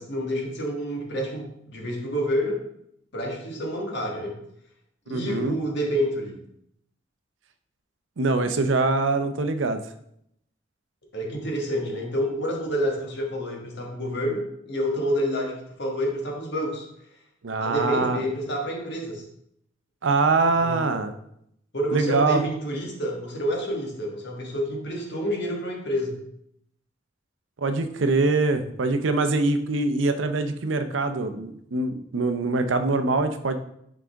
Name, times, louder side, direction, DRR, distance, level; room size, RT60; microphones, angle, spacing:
voice 1, 0.0-2.7 3.1-4.4 5.1-6.4 11.1-16.9 17.6-19.3 20.6-20.8 21.7-26.2, equal, 65° left, 0 dB, 1.5 m, -28 dB
voice 2, 5.1-5.6 8.2-9.8 17.4-18.2 20.0-21.1 21.9-22.4 27.6-33.6, right 3 dB, 80° right, 9 dB, 0.6 m, -23 dB
6.1 x 4.9 x 3.5 m, 0.73 s
head